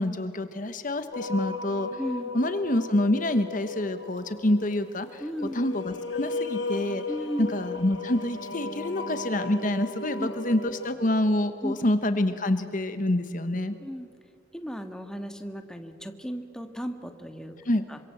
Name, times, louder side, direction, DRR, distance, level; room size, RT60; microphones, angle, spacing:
voice 1, 0.0-2.0 2.3-5.2 5.5-7.0 7.4-13.7 17.6-17.8, left 1 dB, 45° left, 10 dB, 1.1 m, -27 dB
sound 1, 1.1-10.9, left 3 dB, 75° left, 2.0 m, -36 dB
voice 2, 2.0-2.3 5.2-5.6 7.1-7.5 10.2-10.3 11.6-11.7 13.8-14.1 14.5-17.6 17.9-18.0, equal, 5° left, 6 dB, 1.5 m, -34 dB
27.0 x 25.0 x 7.9 m, 2.5 s
head